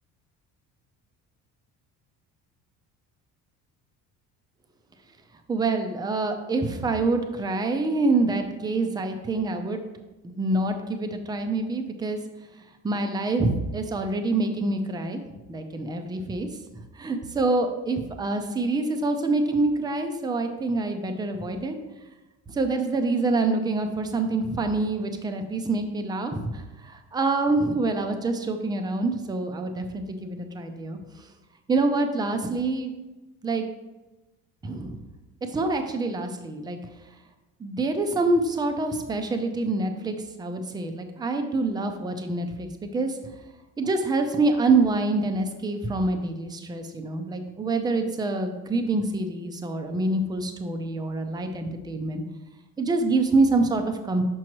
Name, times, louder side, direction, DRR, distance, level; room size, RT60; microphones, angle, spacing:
voice 1, 5.5-9.8 10.2-12.2 12.8-15.2 15.5-16.5 16.7-21.8 22.5-31.0 31.7-32.9 33.4-33.7 34.6-35.0 35.5-36.8 37.6-43.2 43.8-52.2 52.8-54.2, right 3 dB, 10° right, 6 dB, 0.4 m, -26 dB
6.1 x 6.1 x 3.0 m, 1.1 s
cardioid pair, 145°, 35 cm